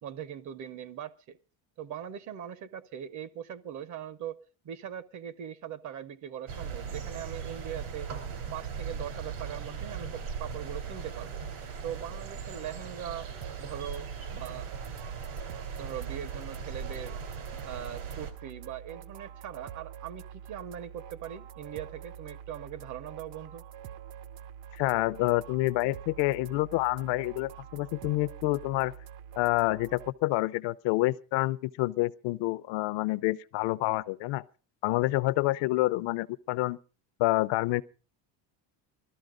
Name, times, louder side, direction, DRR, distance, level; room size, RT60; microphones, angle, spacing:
voice 1, 0.0-1.4 1.8-4.4 4.6-8.1 8.5-11.4 11.8-13.3 13.6-14.1 14.3-14.7 15.8-17.2 17.6-23.6, right 10 dB, 40° right, 0.7 m, -41 dB
sound 1, 6.5-18.3, right 6 dB, 85° right, 2.9 m, -39 dB
sound 2, 13.4-30.1, right 9 dB, 65° right, 0.9 m, -46 dB
voice 2, 24.8-28.9 29.4-34.4 34.8-36.8 37.2-37.8, left 19 dB, 65° left, 0.7 m, -28 dB
20.0 x 13.5 x 3.7 m
cardioid pair, 150°, 46 cm